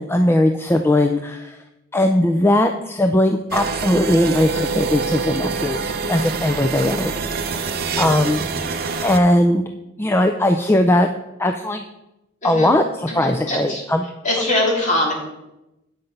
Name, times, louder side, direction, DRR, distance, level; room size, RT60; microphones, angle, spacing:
voice 1, 0.0-1.6 1.9-7.1 7.4-8.5 9.0-9.7 10.0-11.1 11.4-11.8 12.4-14.0, left 1 dB, 10° left, 6 dB, 0.3 m, -19 dB
sound 1, 3.5-9.2, right 4 dB, 50° right, 0.6 m, -25 dB
voice 2, 13.1-13.8 14.2-15.1, left 1 dB, 35° left, -3 dB, 2.8 m, -22 dB
8.8 x 5.9 x 5.3 m, 0.93 s
head